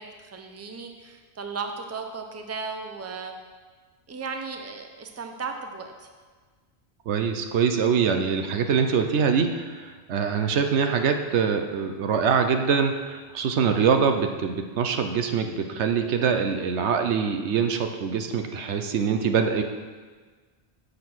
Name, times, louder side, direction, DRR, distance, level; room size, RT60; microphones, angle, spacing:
voice 1, 0.0-3.3 4.1-6.1, right 4 dB, 15° right, 4 dB, 0.6 m, -36 dB
voice 2, 7.1-19.6, right 6 dB, 85° right, 6 dB, 1.0 m, -24 dB
7.5 x 6.7 x 6.1 m, 1.5 s
omnidirectional pair, 1.1 m